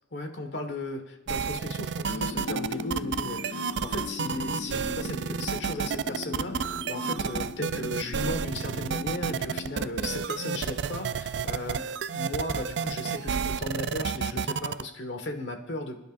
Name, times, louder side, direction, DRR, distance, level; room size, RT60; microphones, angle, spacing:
voice 1, 0.1-16.0, left 2 dB, 75° left, 5 dB, 1.6 m, -36 dB
sound 1, 1.3-14.8, right 6 dB, 70° right, 0.4 m, -31 dB
sound 2, 2.1-10.8, left 3 dB, 45° left, 0.4 m, -39 dB
26.5 x 10.5 x 2.6 m, 0.89 s
head